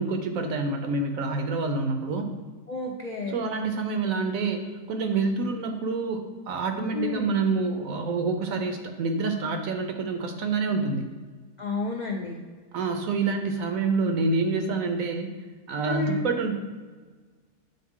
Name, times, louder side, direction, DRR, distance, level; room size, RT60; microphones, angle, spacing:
voice 1, 0.0-2.3 3.3-11.1 12.7-15.3 15.7-16.5, right 4 dB, 70° right, 5 dB, 1.0 m, -27 dB
voice 2, 2.7-3.4 6.9-7.3 11.6-12.3 15.9-16.2, left 4 dB, 65° left, 0 dB, 0.4 m, -31 dB
8.5 x 3.9 x 3.6 m, 1.4 s
omnidirectional pair, 1.6 m